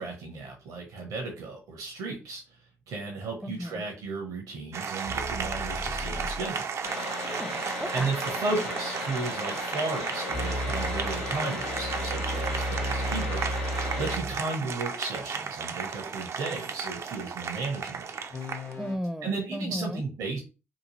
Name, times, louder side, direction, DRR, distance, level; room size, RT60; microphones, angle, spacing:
voice 1, 0.0-2.6 2.9-6.7 7.9-18.0 19.2-20.4, right 3 dB, 70° right, 0.8 m, -34 dB
voice 2, 3.4-3.8 7.3-8.1 18.8-20.0, equal, 5° right, 0.5 m, -35 dB
Applause, 4.7-18.7, right 6 dB, 55° right, 0.4 m, -34 dB
sound 1, 5.1-6.5 10.3-14.5 18.3-19.0, equal, 45° left, 0.8 m, -34 dB
sound 2, 6.8-14.1, left 3 dB, 90° left, 0.7 m, -36 dB
2.9 x 2.3 x 2.9 m
hypercardioid pair, 45°, 6 cm